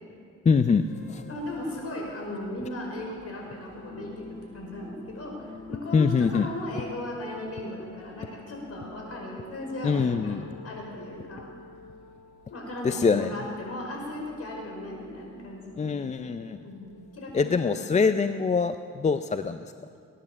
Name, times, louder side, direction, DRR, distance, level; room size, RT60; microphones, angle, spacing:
voice 1, 0.4-0.8 1.1-1.2 5.9-6.5 9.8-10.4 12.8-13.3 15.8-16.6 17.3-19.7, left 5 dB, 25° left, 10 dB, 0.5 m, -24 dB
sound 1, 0.9-17.7, left 3 dB, 90° left, 4.5 m, -48 dB
voice 2, 1.3-10.4 10.6-11.5 12.5-15.9 16.6-17.8, left 1 dB, 50° left, 0 dB, 5.2 m, -37 dB
19.5 x 10.0 x 7.3 m, 2.4 s
cardioid pair, 90°, 30 cm